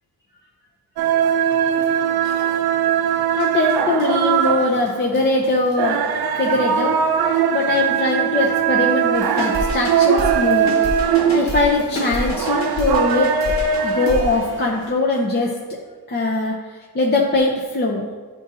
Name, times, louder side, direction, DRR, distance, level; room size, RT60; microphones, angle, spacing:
sound 1, 1.0-14.9, right 8 dB, 65° right, 0.5 m, -20 dB
voice 1, 3.4-6.0 6.4-6.9 7.5-10.8 11.3-13.3 13.8-15.6 16.1-16.5 16.9-18.1, left 2 dB, 25° left, -2 dB, 0.6 m, -21 dB
sound 2, 9.1-15.0, left 1 dB, 45° left, 1.4 m, -29 dB
9.8 x 3.8 x 2.7 m, 1.5 s
wide cardioid pair, 125°, 39 cm